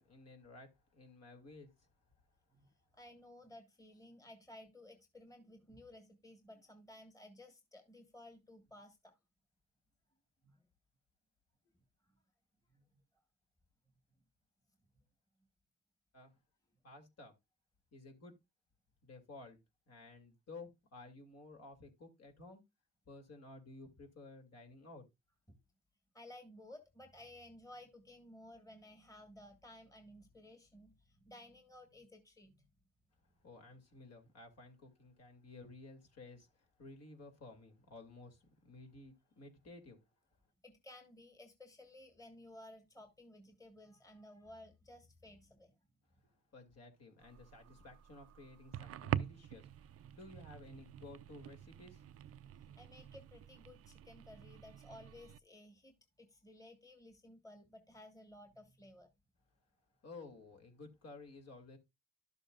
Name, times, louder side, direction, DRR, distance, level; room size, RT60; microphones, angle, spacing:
voice 1, 0.0-1.9 16.1-16.3 16.8-17.3 17.9-18.3 19.0-19.6 19.9-22.6 23.1-25.0 33.4-40.0 46.2-52.1 60.0-61.8, left 3 dB, 55° left, 2.7 m, -54 dB
voice 2, 2.5-9.2 10.4-10.6 12.0-12.2 12.7-13.0 25.5-25.6 26.1-32.7 40.6-45.8 52.6-59.1, left 1 dB, 10° left, 1.6 m, -56 dB
sound 1, 47.2-55.4, right 11 dB, 50° right, 0.5 m, -45 dB
12.0 x 6.8 x 2.4 m
cardioid pair, 90°, 30 cm